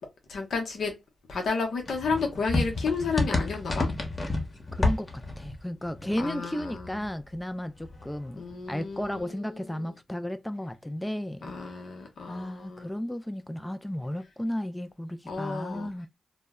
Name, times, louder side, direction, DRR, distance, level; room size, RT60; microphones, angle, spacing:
voice 1, 0.3-0.9 1.3-3.9 6.2-6.9 8.4-9.9 11.4-12.9 15.3-15.9, left 4 dB, 75° left, 0.7 m, -32 dB
sound 1, 1.9-7.4 7.7-9.2, left 2 dB, 40° left, 0.9 m, -31 dB
voice 2, 4.7-8.4 8.7-11.5 12.3-16.1, left 1 dB, 10° left, 0.3 m, -34 dB
2.1 x 2.0 x 3.4 m
supercardioid pair, 50°, 0 cm